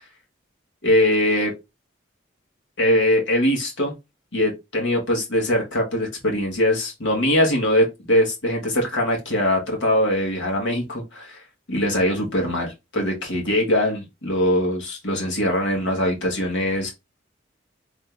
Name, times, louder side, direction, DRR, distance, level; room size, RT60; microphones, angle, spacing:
voice 1, 0.8-1.5 2.8-3.9 4.3-11.4 11.7-16.9, left 1 dB, 80° left, 0 dB, 1.8 m, -22 dB
3.7 x 3.3 x 3.4 m, 0.23 s
head